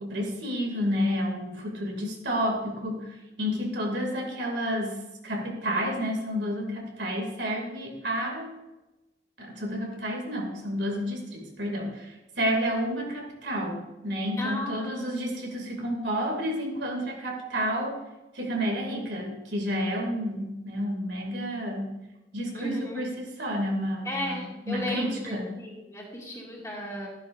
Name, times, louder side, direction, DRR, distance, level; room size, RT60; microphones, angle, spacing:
voice 1, 0.0-8.5 9.4-17.9 18.3-22.0 22.3-25.5, equal, 85° right, 0 dB, 2.9 m, -30 dB
voice 2, 14.4-15.2 22.5-23.0 24.0-27.1, left 1 dB, 20° left, -4 dB, 2.5 m, -35 dB
13.5 x 10.5 x 2.7 m, 1.0 s
head